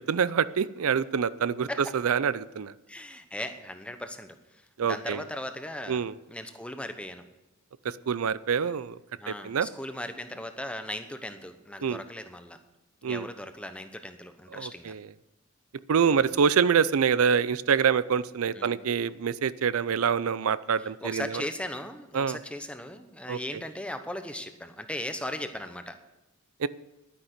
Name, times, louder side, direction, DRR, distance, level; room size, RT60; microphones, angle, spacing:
voice 1, 0.1-2.7 4.8-5.2 5.9-6.2 7.8-9.0 9.3-9.7 11.8-12.0 13.0-13.3 14.5-15.0 15.9-21.4 22.1-22.4 23.3-23.6 26.6-26.7, right 6 dB, 85° right, 17 dB, 0.5 m, -26 dB
voice 2, 2.9-4.3 4.8-7.2 9.2-12.6 13.0-14.9 16.0-16.2 18.5-18.7 21.0-25.9, left 1 dB, 5° left, 8 dB, 0.9 m, -38 dB
11.5 x 9.9 x 6.7 m, 1.0 s
head